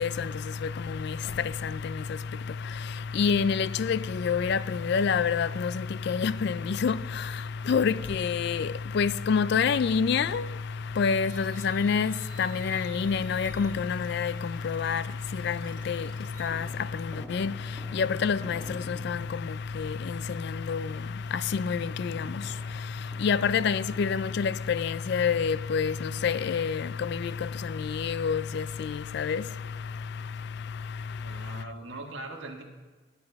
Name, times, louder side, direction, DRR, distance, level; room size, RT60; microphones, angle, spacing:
voice 1, 0.0-31.6, left 6 dB, 55° left, 0.3 m, -28 dB
sound 1, 11.3-16.5, right 6 dB, 40° right, 0.9 m, -53 dB
sound 2, 15.4-26.6, equal, 5° left, 1.4 m, -51 dB
voice 2, 31.2-32.6, right 2 dB, 65° right, 1.6 m, -41 dB
19.0 x 8.6 x 3.5 m
head